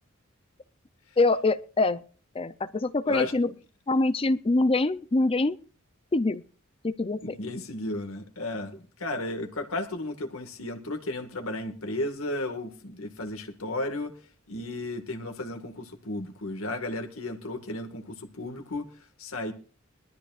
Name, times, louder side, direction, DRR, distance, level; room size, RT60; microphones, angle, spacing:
voice 1, 1.2-2.0 2.3-3.5 3.9-5.6 6.1-6.4 6.8-7.4, left 2 dB, 25° left, 0.5 m, -24 dB
voice 2, 7.2-14.1 14.5-18.9 19.2-19.5, left 2 dB, 90° left, 1.8 m, -34 dB
21.5 x 13.5 x 2.5 m
head